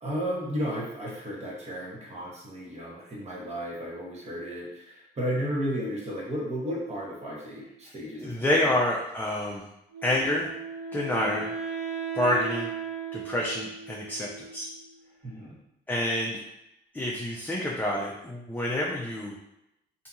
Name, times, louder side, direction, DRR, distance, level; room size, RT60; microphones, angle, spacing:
voice 1, 0.0-8.7 11.2-11.4 15.2-15.6, equal, 35° right, -4 dB, 1.0 m, -34 dB
voice 2, 8.2-9.6 10.0-10.5 10.9-11.5 12.1-12.7 13.1-14.7 15.9-16.4 16.9-19.4, left 1 dB, 10° left, -4 dB, 0.4 m, -28 dB
Wind instrument woodwind instrument, 9.9-15.0, right 5 dB, 65° right, 1.3 m, -36 dB
2.7 x 2.7 x 2.3 m, 0.84 s
cardioid pair, 90°, 20 cm